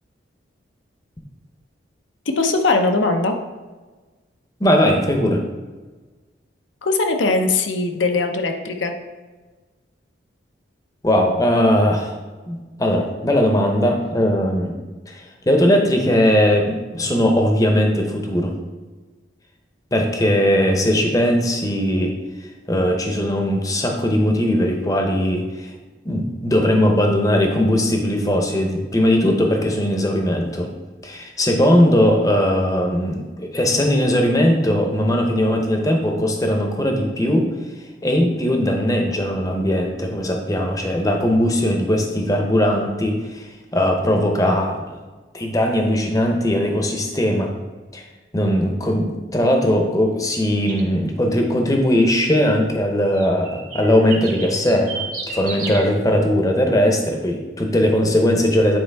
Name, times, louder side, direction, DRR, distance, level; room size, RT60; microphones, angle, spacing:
voice 1, 2.4-3.3 6.8-8.9, left 3 dB, 85° left, 5 dB, 0.7 m, -20 dB
voice 2, 4.6-5.4 11.0-12.1 12.5-14.8 15.1-18.5 19.9-22.2 22.7-25.7 26.0-30.7 31.0-37.5 38.0-45.0 45.3-47.5 47.9-48.0 48.3-58.8, equal, 20° left, 3 dB, 0.7 m, -19 dB
sound 1, 50.7-50.9 53.1-55.9, right 5 dB, 45° right, 1.2 m, -32 dB
8.9 x 4.4 x 3.4 m, 1.3 s
head